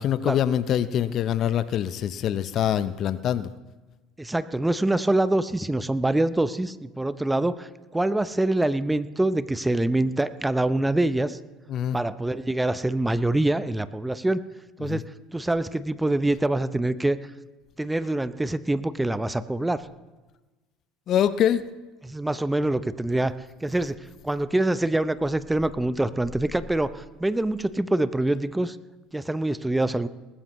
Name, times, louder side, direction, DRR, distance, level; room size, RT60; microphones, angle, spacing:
voice 1, 0.0-3.5 11.7-12.0 14.8-15.0 21.1-21.6, left 10 dB, 50° left, 14 dB, 0.7 m, -24 dB
voice 2, 4.2-11.4 11.9-14.4 14.8-15.0 15.3-17.2 17.8-19.8 22.0-23.3 23.6-24.0 24.2-28.8 29.1-30.1, right 1 dB, 10° right, 14 dB, 0.7 m, -25 dB
20.0 x 14.5 x 3.1 m, 1.2 s
hypercardioid pair, 75°, 0 cm